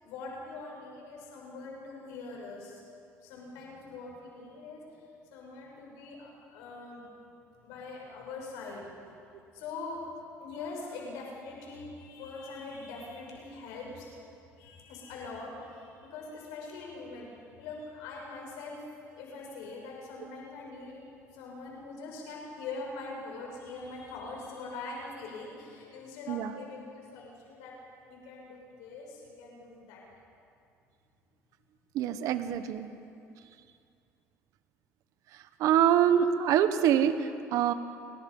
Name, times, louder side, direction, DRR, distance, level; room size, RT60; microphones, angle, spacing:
voice 1, 0.0-2.8 3.2-5.0 5.3-7.1 7.6-8.9 9.5-10.0 10.3-14.1 14.6-17.3 17.5-18.8 19.1-21.0 21.3-27.8 28.1-30.0, left 3 dB, 90° left, -1 dB, 6.3 m, -43 dB
voice 2, 31.9-32.9 35.6-37.7, right 9 dB, 70° right, 10 dB, 1.3 m, -25 dB
29.5 x 21.0 x 5.6 m, 2.5 s
cardioid pair, 95°, 6 cm